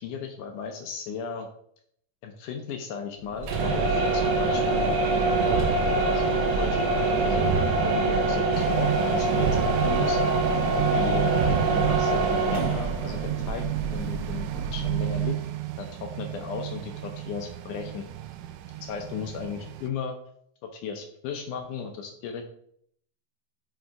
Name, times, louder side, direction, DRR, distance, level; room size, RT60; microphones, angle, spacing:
voice 1, 0.0-1.5 2.2-7.5 7.8-10.2 10.7-15.4 15.8-18.1 18.8-20.2 20.7-22.4, left 6 dB, 75° left, 4 dB, 1.9 m, -36 dB
sound 1, 3.4-15.2, right 3 dB, 75° right, 1.5 m, -24 dB
sound 2, 8.5-19.9, right 17 dB, 90° right, 1.8 m, -32 dB
6.0 x 5.0 x 4.6 m, 0.68 s
omnidirectional pair, 4.4 m